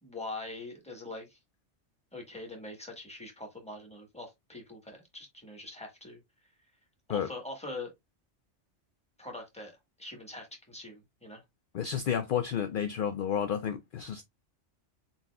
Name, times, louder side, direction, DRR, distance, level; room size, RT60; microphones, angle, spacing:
voice 1, 0.0-1.4 2.1-6.2 7.1-7.9 9.2-11.4, left 2 dB, 5° left, 1.3 m, -43 dB
voice 2, 11.7-14.2, left 8 dB, 60° left, 0.6 m, -31 dB
7.2 x 2.8 x 2.3 m
omnidirectional pair, 1.3 m